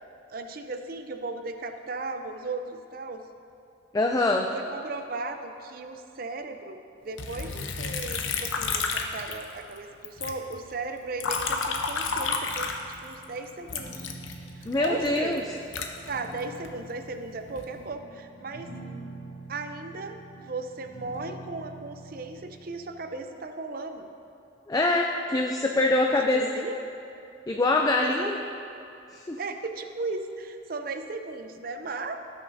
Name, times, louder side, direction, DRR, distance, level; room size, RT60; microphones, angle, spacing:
voice 1, 0.3-3.2 4.5-6.8 7.0-12.7 13.0-14.1 14.5-15.6 16.1-18.7 19.5-24.1 26.1-26.8 28.0-28.5 29.4-32.2, right 3 dB, 50° right, 7 dB, 0.5 m, -36 dB
voice 2, 3.9-4.5 14.7-15.4 24.7-26.4 27.5-28.4 29.1-29.4, left 2 dB, 20° left, 2 dB, 0.3 m, -24 dB
Liquid, 7.2-9.8 10.0-13.2 13.7-16.7 17.3-17.8, left 4 dB, 85° left, 0.8 m, -31 dB
sound 1, 12.3-23.2, right 2 dB, 60° left, 1.9 m, -46 dB
17.0 x 6.4 x 2.6 m, 2.8 s
head